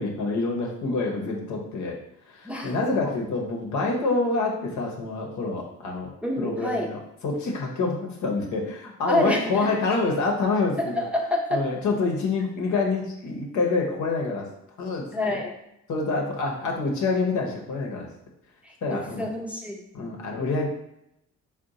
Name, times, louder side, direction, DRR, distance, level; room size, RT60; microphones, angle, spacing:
voice 1, 0.0-2.0 2.3-6.1 6.4-11.0 11.5-14.5 14.8-15.0 15.3-15.4 15.9-18.1 18.8-19.3 19.9-20.7, left 3 dB, 75° left, 0 dB, 1.0 m, -27 dB
voice 2, 2.4-2.8 3.0-3.2 6.2-6.9 9.1-9.7 10.8-11.6 15.1-15.5 18.6-19.8, left 1 dB, 5° right, -2 dB, 0.6 m, -27 dB
3.7 x 2.4 x 3.9 m, 0.80 s
cardioid pair, 90°, 30 cm